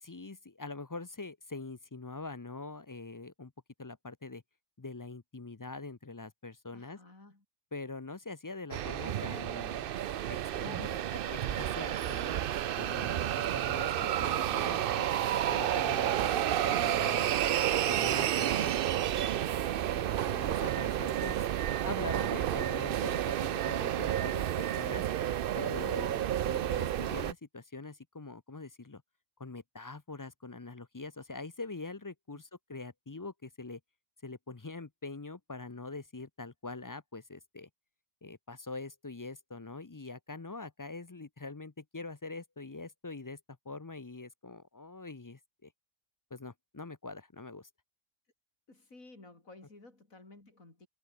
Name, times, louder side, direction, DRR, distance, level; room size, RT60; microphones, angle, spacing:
voice 1, 0.0-3.5 3.8-4.4 4.8-7.0 7.7-9.8 10.3-10.4 10.7-11.2 11.5-12.4 12.8-15.1 15.5-17.3 17.9-18.8 19.9-21.5 21.8-25.0 25.6-26.2 26.5-29.0 29.4-33.8 34.2-37.7 38.2-43.4 43.6-45.7 46.3-47.7, left 3 dB, 25° left, 0.5 m, -43 dB
voice 2, 6.7-7.4 10.5-11.0 19.7-20.4 26.0-26.3 32.3-32.4 48.7-50.9, left 2 dB, 75° left, 5.6 m, -53 dB
sound 1, 8.7-27.3, right 11 dB, 60° right, 0.6 m, -31 dB
omnidirectional pair, 1.4 m